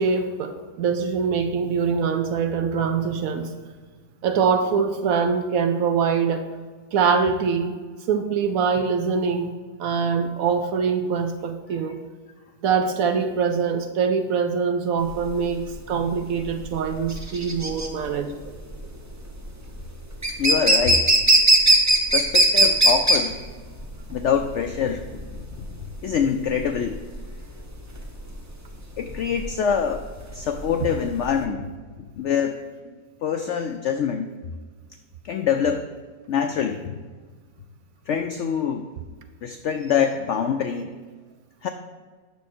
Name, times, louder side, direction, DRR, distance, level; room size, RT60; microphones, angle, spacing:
voice 1, 0.0-3.5 4.2-6.5 6.9-7.8 8.1-9.5 9.8-12.0 12.6-18.5, right 6 dB, 65° right, 8 dB, 0.9 m, -23 dB
sound 1, 15.1-31.4, right 1 dB, 25° right, 0.3 m, -21 dB
voice 2, 20.4-21.0 22.1-23.4 24.1-25.3 25.5-25.7 26.0-27.0 29.0-30.0 30.3-31.7 32.2-32.6 33.2-34.3 35.2-35.9 36.3-37.0 38.1-38.9 39.4-40.9 41.6-41.7, left 7 dB, 85° left, 6 dB, 0.6 m, -25 dB
9.0 x 6.1 x 4.3 m, 1.5 s
omnidirectional pair, 1.8 m